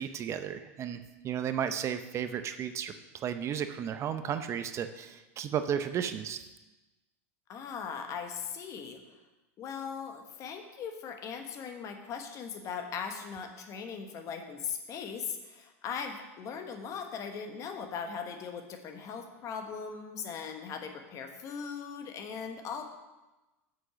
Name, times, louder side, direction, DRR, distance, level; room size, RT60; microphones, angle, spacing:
voice 1, 0.0-2.9 3.2-6.4, right 8 dB, 35° right, 9 dB, 0.6 m, -34 dB
voice 2, 7.5-9.0 9.6-22.9, left 6 dB, 40° left, 5 dB, 1.2 m, -39 dB
7.8 x 6.2 x 5.8 m, 1.1 s
hypercardioid pair, 105°, 8 cm